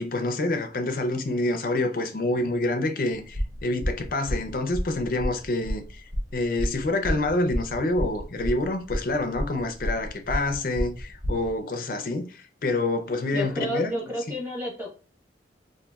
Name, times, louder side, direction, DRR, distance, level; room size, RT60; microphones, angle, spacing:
voice 1, 0.0-13.9, left 2 dB, 50° left, 0.5 m, -27 dB
sound 1, 3.3-11.5, equal, 75° right, 0.9 m, -30 dB
voice 2, 13.3-14.9, equal, 10° right, 0.9 m, -30 dB
3.9 x 2.6 x 2.3 m
head